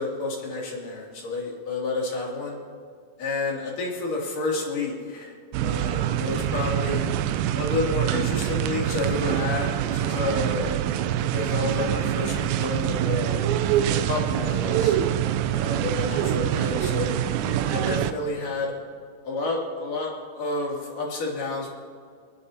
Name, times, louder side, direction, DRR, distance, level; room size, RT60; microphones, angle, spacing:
voice 1, 0.0-2.6 3.2-5.3 5.6-7.1 7.5-10.8 11.3-13.4 13.9-15.0 15.5-18.7 19.2-21.7, left 3 dB, 55° left, -3 dB, 4.0 m, -30 dB
sound 1, 5.5-18.1, right 11 dB, 85° right, 2.0 m, -25 dB
29.0 x 11.0 x 2.8 m, 2.2 s
omnidirectional pair, 4.7 m